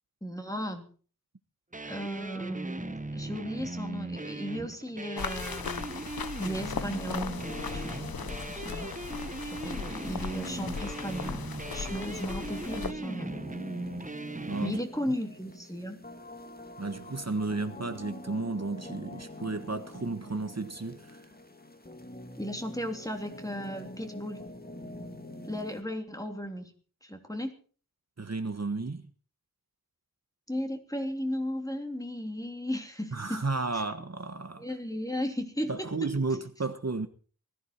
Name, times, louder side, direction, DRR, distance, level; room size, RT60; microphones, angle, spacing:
voice 1, 0.2-0.8 1.8-6.1 6.4-9.0 9.4-11.4 11.7-13.4 14.6-16.0 22.4-24.4 25.5-26.7 27.0-27.5 30.5-33.4 33.7-33.8 34.6-36.1, equal, 10° left, 3.2 m, -35 dB
sound 1, 1.7-14.8, right 2 dB, 20° right, 0.9 m, -39 dB
sound 2, 5.2-12.9, left 6 dB, 85° left, 0.8 m, -38 dB
sound 3, 6.7-25.8, left 1 dB, 25° left, 2.1 m, -45 dB
voice 2, 14.3-14.8 16.8-21.3 28.2-29.1 33.1-34.7 35.7-37.1, right 3 dB, 45° right, 1.3 m, -33 dB
20.0 x 14.5 x 4.5 m
wide cardioid pair, 65°, 35 cm